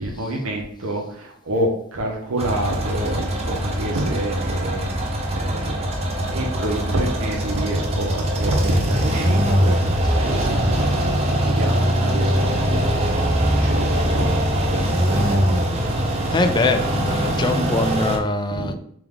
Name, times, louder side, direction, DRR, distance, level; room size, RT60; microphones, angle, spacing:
voice 1, 0.0-12.9 13.4-16.1 18.5-18.7, right 1 dB, 75° right, 0 dB, 0.7 m, -28 dB
sound 1, 2.4-18.2, equal, 30° right, 0.6 m, -22 dB
voice 2, 16.3-18.7, left 2 dB, 20° left, 7 dB, 0.3 m, -22 dB
3.5 x 3.0 x 3.5 m, 0.66 s
head